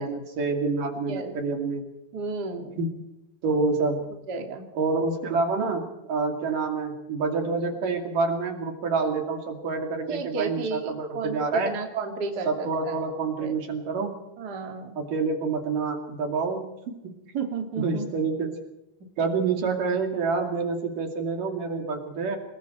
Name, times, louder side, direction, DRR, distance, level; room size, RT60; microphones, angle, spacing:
voice 1, 0.0-1.9 2.8-2.9 3.4-4.0 4.8-11.7 12.5-14.2 15.0-17.1 17.8-18.6 19.2-22.4, right 4 dB, 60° right, 3 dB, 3.8 m, -27 dB
voice 2, 2.1-2.8 4.3-4.6 10.1-13.0 13.4-13.6 14.4-14.9 17.3-18.1 19.2-19.3, right 4 dB, 30° right, 2 dB, 2.8 m, -32 dB
27.5 x 21.5 x 4.5 m, 0.92 s
omnidirectional pair, 4.6 m